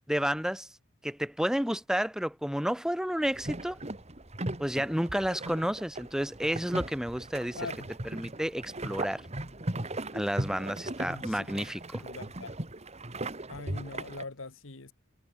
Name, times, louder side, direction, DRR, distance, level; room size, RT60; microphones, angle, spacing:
voice 1, 0.1-0.7 1.0-3.8 4.6-7.6 8.0-9.2 10.1-12.0, equal, 5° right, 1.4 m, -31 dB
sound 1, 3.2-14.2, right 1 dB, 35° right, 2.4 m, -38 dB
voice 2, 7.6-7.9 11.0-11.5 12.0-12.5 13.5-14.9, left 3 dB, 75° left, 1.6 m, -42 dB
head